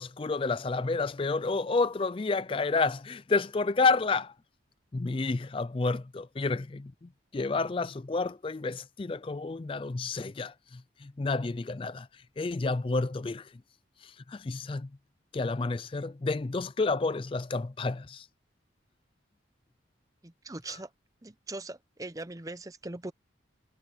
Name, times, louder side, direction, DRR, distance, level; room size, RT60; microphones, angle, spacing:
voice 1, 0.0-4.3 4.9-12.1 12.4-13.5 14.0-14.9 15.3-18.3, left 3 dB, 30° left, 0.4 m, -30 dB
voice 2, 20.2-20.9 21.2-23.1, right 2 dB, 20° right, 0.7 m, -40 dB
head